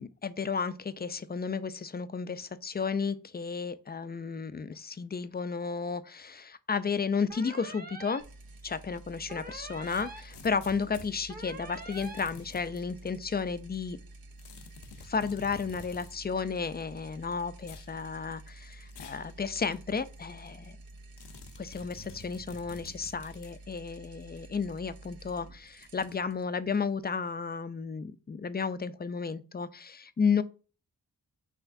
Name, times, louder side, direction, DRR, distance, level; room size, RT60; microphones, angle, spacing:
voice 1, 0.0-8.2 8.6-14.0 15.0-20.8 21.6-30.4, left 5 dB, 25° left, 0.4 m, -33 dB
sound 1, 7.3-8.2 9.3-10.2 11.3-12.2, right 2 dB, 25° right, 0.9 m, -44 dB
sound 2, 8.2-27.5, right 2 dB, 60° right, 0.8 m, -50 dB
sound 3, 9.8-11.1 11.9-12.8 14.4-16.2 17.6-17.9 18.9-19.3 19.7-19.8 21.2-23.6, left 5 dB, 90° left, 0.6 m, -50 dB
5.8 x 3.3 x 2.6 m
cardioid pair, 65°, 40 cm